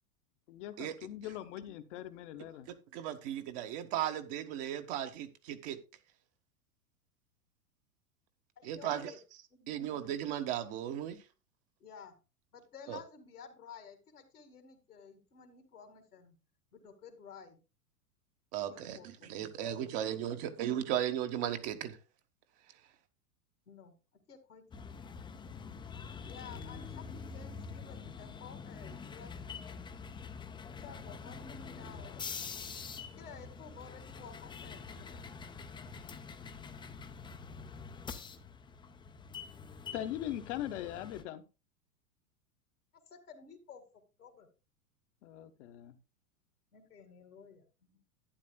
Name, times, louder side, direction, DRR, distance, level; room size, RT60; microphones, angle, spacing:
voice 1, 0.5-2.7 39.9-41.4 45.2-46.0, left 12 dB, 50° left, 9 dB, 1.1 m, -41 dB
voice 2, 2.7-5.8 8.6-9.1 9.7-11.2 12.9-13.0 18.5-19.0 19.2-22.0, right 11 dB, 45° right, 7 dB, 1.3 m, -36 dB
voice 3, 8.6-9.2 9.5-9.9 11.8-12.2 12.5-16.4 16.7-17.6 18.6-20.6 23.7-24.0 24.3-25.0 26.3-29.3 30.8-32.2 33.2-35.2 43.1-43.8 44.2-44.5 46.7-48.0, left 6 dB, 80° left, 6 dB, 2.1 m, -53 dB
sound 1, 24.7-41.2, left 5 dB, 10° left, 0.6 m, -46 dB
11.5 x 9.3 x 2.2 m, 0.30 s
figure-of-eight pair, 95°, 45 cm